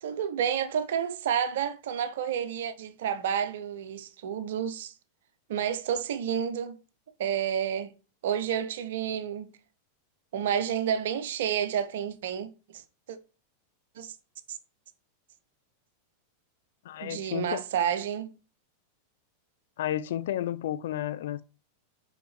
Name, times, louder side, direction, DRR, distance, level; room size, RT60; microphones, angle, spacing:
voice 1, 0.0-4.9 5.5-6.8 7.2-7.9 8.2-9.5 10.3-12.8 13.1-13.2 14.0-14.1 14.5-14.6 17.0-18.3, right 8 dB, 55° right, 0.8 m, -30 dB
voice 2, 16.9-17.6 19.8-21.4, left 12 dB, 55° left, 0.4 m, -32 dB
6.0 x 5.0 x 3.2 m
figure-of-eight pair, 90°, 0 cm